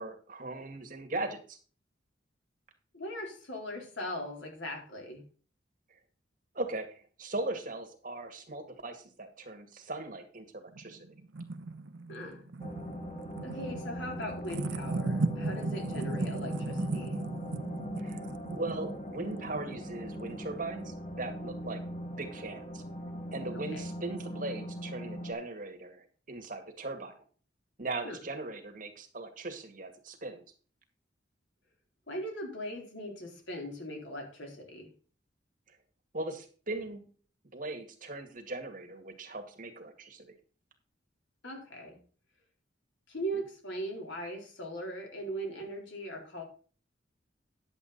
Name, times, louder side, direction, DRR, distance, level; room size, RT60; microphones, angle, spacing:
voice 1, 0.0-1.6 5.9-6.0 6.5-11.1 18.0-22.8 23.3-27.1 27.8-30.4 35.7-35.8 36.1-37.0 37.5-40.3, right 2 dB, 45° right, 2.0 m, -39 dB
voice 2, 2.9-5.2 12.1-12.5 13.4-17.2 23.5-23.9 28.0-28.2 32.1-34.9 41.4-42.0 43.1-46.4, equal, 80° left, 3.9 m, -39 dB
sound 1, 10.8-20.8, right 2 dB, 80° right, 0.7 m, -37 dB
sound 2, 12.6-25.3, equal, 35° left, 1.5 m, -40 dB
10.5 x 8.3 x 4.1 m
head